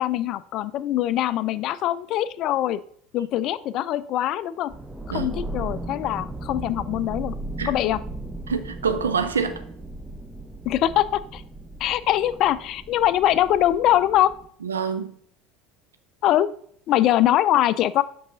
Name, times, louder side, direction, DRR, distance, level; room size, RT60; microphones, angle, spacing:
voice 1, 0.0-2.8 3.1-4.7 5.1-7.3 7.7-8.0 10.7-11.4 11.8-14.3 16.2-16.5 16.9-18.0, left 13 dB, 50° left, 16 dB, 0.3 m, -22 dB
sound 1, 4.7-14.5, right 1 dB, 5° right, 0.6 m, -36 dB
voice 2, 8.5-9.6 14.6-15.2, right 6 dB, 75° right, 10 dB, 0.5 m, -26 dB
7.9 x 5.5 x 2.6 m, 0.62 s
figure-of-eight pair, 70°, 0 cm